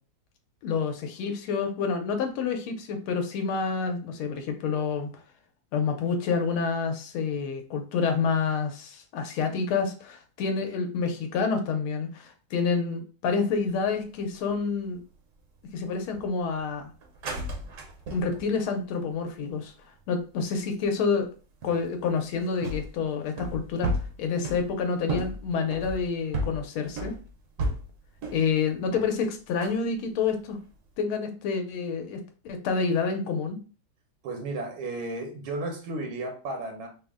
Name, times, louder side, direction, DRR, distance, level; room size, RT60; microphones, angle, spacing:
voice 1, 0.6-5.1 5.7-15.0 15.7-16.9 18.1-19.7 20.1-21.3 21.6-23.9 24.2-27.2 28.3-30.6 31.0-32.2 32.4-33.6, left 5 dB, 90° left, 5 dB, 1.5 m, -28 dB
sound 1, 13.5-14.0 14.3-14.5 15.0-15.4 16.0-18.7 19.2-19.7 20.0-20.4 21.2-21.3 21.6-28.5 28.9-29.2 29.6-29.8 30.6-30.9, right 1 dB, 60° right, 0.8 m, -34 dB
voice 2, 34.2-36.9, right 2 dB, 85° right, 2 dB, 1.6 m, -33 dB
3.9 x 2.1 x 3.4 m, 0.37 s
omnidirectional pair, 2.2 m